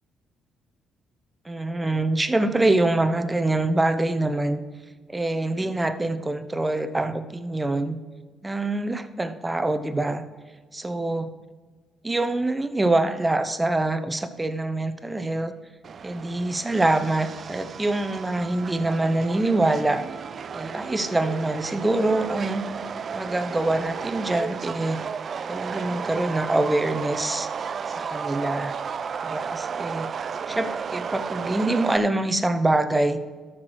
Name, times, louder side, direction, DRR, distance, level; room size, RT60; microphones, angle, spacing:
voice 1, 1.4-4.6 5.1-8.0 8.4-10.2 10.7-11.3 12.0-15.5 16.0-20.0 20.5-22.6 23.1-25.0 25.5-27.5 28.0-28.7 29.2-30.1 30.5-33.2, right 2 dB, 20° right, 10 dB, 1.0 m, -25 dB
Subway metro underground, 15.8-32.0, right 6 dB, 50° right, 0.4 m, -33 dB
12.5 x 6.1 x 4.7 m, 1.4 s
supercardioid pair, 55°, 0 cm